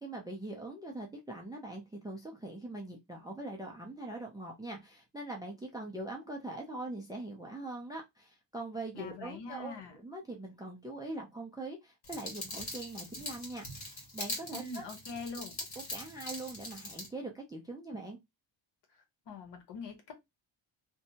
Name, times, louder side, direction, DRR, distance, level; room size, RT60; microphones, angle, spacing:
voice 1, 0.0-14.8 15.9-18.2, right 2 dB, 10° right, 0.4 m, -42 dB
voice 2, 8.9-10.0 14.5-15.6 19.3-20.1, left 3 dB, 60° left, 1.0 m, -43 dB
sound 1, 12.0-17.1, left 2 dB, 35° left, 1.3 m, -42 dB
2.7 x 2.2 x 2.7 m
cardioid pair, 130°, 48 cm